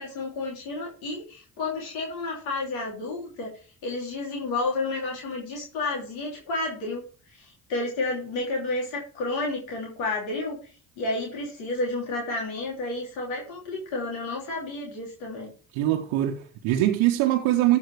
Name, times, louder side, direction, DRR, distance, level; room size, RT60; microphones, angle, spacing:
voice 1, 0.0-3.5 3.8-7.0 7.3-10.6 11.0-15.5, left 2 dB, 75° left, 3.3 m, -31 dB
voice 2, 15.7-17.8, right 14 dB, 75° right, 1.1 m, -23 dB
14.5 x 5.3 x 4.9 m
hypercardioid pair, 50°, 48 cm